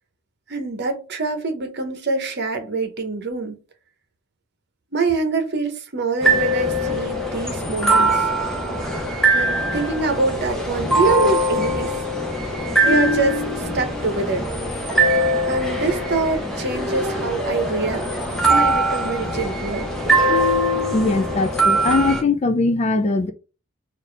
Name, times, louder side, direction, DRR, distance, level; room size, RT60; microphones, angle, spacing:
voice 1, 0.5-3.6 4.9-8.3 9.3-12.0 12.8-14.5 15.5-19.9, right 3 dB, 50° right, 0.9 m, -25 dB
sound 1, 6.2-22.2, right 1 dB, ahead, 0.9 m, -21 dB
voice 2, 20.9-23.3, left 3 dB, 30° left, 0.4 m, -20 dB
4.1 x 2.6 x 3.3 m
head